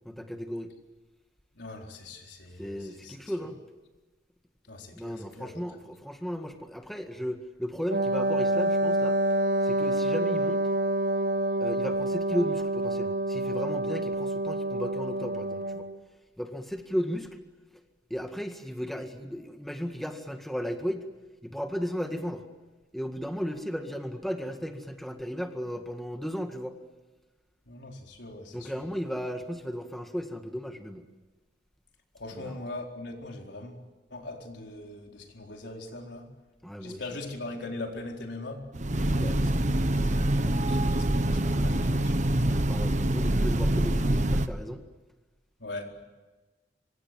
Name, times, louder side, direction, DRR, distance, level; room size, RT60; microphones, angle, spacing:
voice 1, 0.1-0.7 2.6-3.6 4.9-9.2 9.6-10.6 11.6-15.9 16.4-17.3 18.1-21.1 21.4-22.4 22.9-26.7 28.5-31.0 32.3-32.5 36.6-37.0 39.0-39.4 41.6-42.0 42.5-44.8, equal, ahead, 1.8 m, -35 dB
voice 2, 1.5-3.5 4.7-5.6 27.6-28.7 32.1-33.8 34.1-36.3 36.8-38.7 38.9-42.2 45.6-46.0, left 2 dB, 85° left, 4.3 m, -41 dB
Wind instrument woodwind instrument, 7.9-16.0, right 1 dB, 85° right, 1.9 m, -27 dB
Train, 38.7-44.5, right 1 dB, 45° right, 1.2 m, -25 dB
25.5 x 25.0 x 7.7 m
head